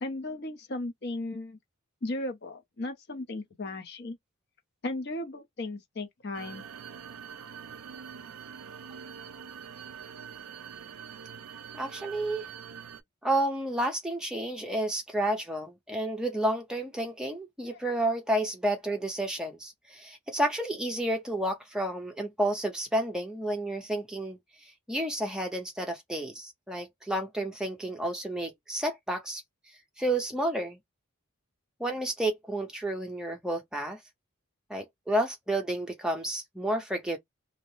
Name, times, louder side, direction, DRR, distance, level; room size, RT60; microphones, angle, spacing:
voice 1, 0.0-1.6 2.0-4.2 4.8-6.6 17.7-17.8, left 2 dB, 50° left, 0.7 m, -36 dB
sound 1, 6.3-13.0, right 7 dB, 80° right, 0.5 m, -44 dB
voice 2, 11.7-12.5 13.2-29.4 30.0-30.8 31.8-34.0 34.7-37.2, right 1 dB, 5° right, 0.6 m, -31 dB
2.7 x 2.0 x 3.1 m
head